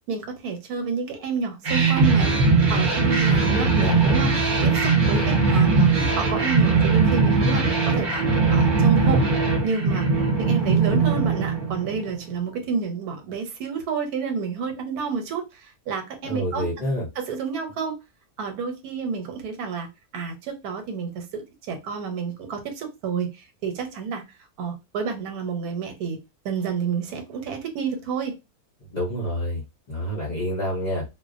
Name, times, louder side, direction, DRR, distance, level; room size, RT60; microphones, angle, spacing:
voice 1, 0.1-2.3 2.7-8.2 8.5-9.2 9.6-10.1 10.4-16.7 17.2-18.0 18.4-19.9 20.1-24.2 24.6-26.2 26.4-28.3, right 5 dB, 85° right, 1.2 m, -29 dB
sound 1, 1.6-12.2, right 4 dB, 50° right, 0.6 m, -20 dB
voice 2, 3.5-4.2 16.2-17.1 28.8-31.0, equal, 50° left, 0.5 m, -28 dB
2.4 x 2.1 x 2.4 m
omnidirectional pair, 1.6 m